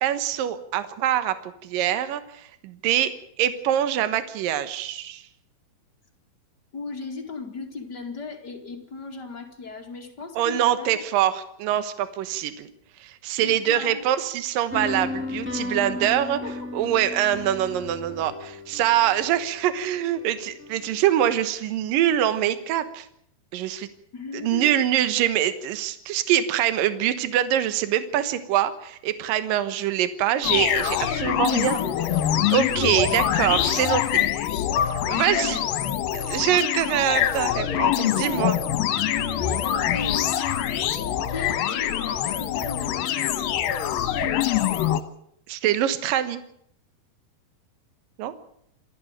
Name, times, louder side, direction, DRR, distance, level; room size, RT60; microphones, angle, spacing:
voice 1, 0.0-3.1 3.4-5.2 10.4-12.7 13.0-16.4 16.7-23.1 23.5-23.9 24.4-31.8 32.5-34.3 35.1-35.6 36.1-38.6 45.5-46.4 48.2-48.3, right 11 dB, 70° right, 11 dB, 2.8 m, -24 dB
voice 2, 6.7-11.0 13.4-14.1 16.0-16.7 24.1-24.8 31.6-32.2 35.3-35.8 39.1-40.7 41.3-43.6, left 4 dB, 30° left, 2 dB, 2.4 m, -37 dB
sound 1, 14.7-21.6, left 2 dB, 5° right, 1.6 m, -35 dB
sound 2, 30.4-45.0, left 10 dB, 75° left, 2.9 m, -24 dB
27.0 x 12.0 x 8.9 m, 0.69 s
omnidirectional pair, 4.4 m